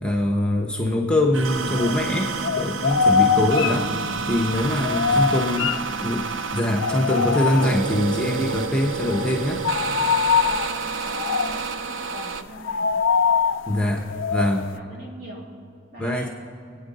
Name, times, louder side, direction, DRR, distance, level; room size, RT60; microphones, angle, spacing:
voice 1, 0.0-5.7 6.0-6.2 6.5-9.7 13.7-14.7 16.0-16.3, left 1 dB, 5° left, 1 dB, 1.0 m, -23 dB
sound 1, 1.3-12.4, right 5 dB, 75° right, 0.6 m, -30 dB
sound 2, 1.4-2.2 2.4-6.4 6.8-8.1 8.5-8.7 8.9-14.7, left 6 dB, 75° left, 0.4 m, -23 dB
voice 2, 4.8-6.0 9.7-9.9 10.4-13.0 14.1-15.5 15.9-16.3, equal, 50° right, -3 dB, 2.9 m, -43 dB
25.5 x 9.1 x 4.2 m, 2.5 s
head